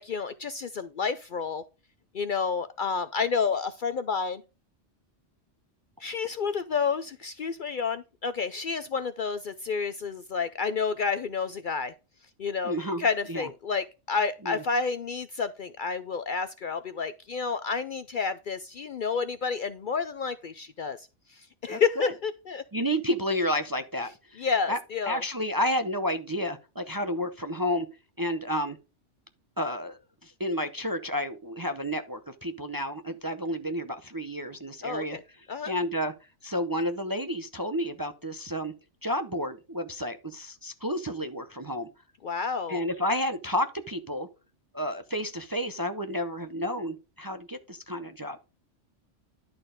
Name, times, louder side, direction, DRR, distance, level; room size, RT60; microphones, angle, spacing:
voice 1, 0.0-1.6 2.1-4.4 6.0-11.9 12.4-22.6 24.4-25.2 34.8-35.2 35.5-35.7 42.2-42.8, left 5 dB, 55° left, 0.6 m, -30 dB
voice 2, 12.6-13.5 14.4-14.6 21.7-22.1 22.7-24.8 25.1-27.9 28.2-28.8 29.6-35.2 35.6-36.1 36.4-38.7 39.0-41.9 42.7-44.3 44.7-48.4, equal, 25° right, 0.5 m, -31 dB
11.5 x 4.4 x 5.0 m
omnidirectional pair, 1.2 m